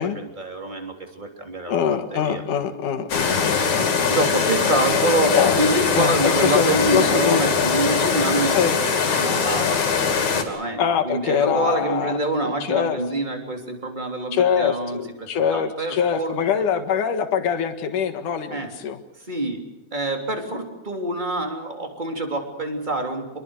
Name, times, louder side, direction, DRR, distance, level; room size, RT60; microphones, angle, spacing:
voice 1, 0.0-2.4 4.1-8.6 9.1-9.8 10.2-16.4 18.5-18.7 19.3-19.6 19.9-23.4, right 2 dB, 15° right, 4 dB, 3.0 m, -26 dB
voice 2, 1.7-4.1 4.4-4.5 5.3-5.6 5.9-7.4 7.8-8.0 8.5-8.8 10.8-13.0 14.3-14.8 15.3-19.0, left 7 dB, 85° left, 7 dB, 3.2 m, -23 dB
sound 1, 3.1-10.4, left 5 dB, 65° left, 4.1 m, -21 dB
26.0 x 22.5 x 6.5 m, 1.0 s
omnidirectional pair, 3.5 m